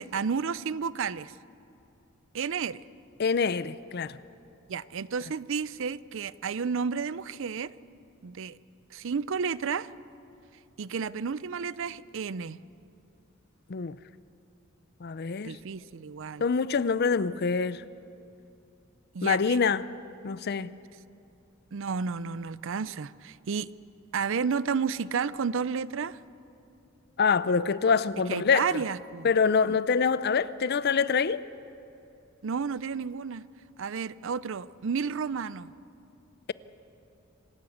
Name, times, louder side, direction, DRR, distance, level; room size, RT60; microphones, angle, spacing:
voice 1, 0.0-1.3 2.3-2.8 4.7-7.7 8.2-8.6 8.9-9.9 10.8-12.6 15.4-16.5 19.1-19.6 21.7-23.7 24.1-26.2 28.3-29.3 29.7-29.8 32.4-33.4 33.8-35.7, right 6 dB, 65° right, 0.5 m, -31 dB
voice 2, 3.2-4.2 13.7-14.0 15.0-15.6 16.4-17.8 19.2-19.8 20.2-20.7 27.2-28.8 29.2-31.4, left 5 dB, 50° left, 0.5 m, -25 dB
26.5 x 13.0 x 8.5 m
head